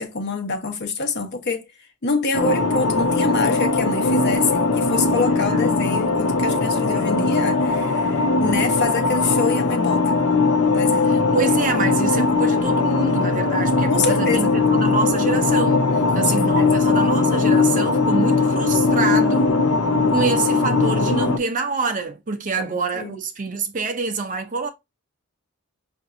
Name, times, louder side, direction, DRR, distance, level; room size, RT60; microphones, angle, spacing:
voice 1, 0.0-1.7 2.0-10.2 10.7-11.3 13.9-14.5 16.1-16.8 22.6-23.1, left 4 dB, 50° left, 0.9 m, -26 dB
sound 1, 2.3-21.4, left 3 dB, 70° left, 0.6 m, -19 dB
voice 2, 11.3-15.8 16.1-19.5 20.1-24.7, right 4 dB, 35° right, 0.6 m, -26 dB
5.7 x 2.6 x 2.5 m
head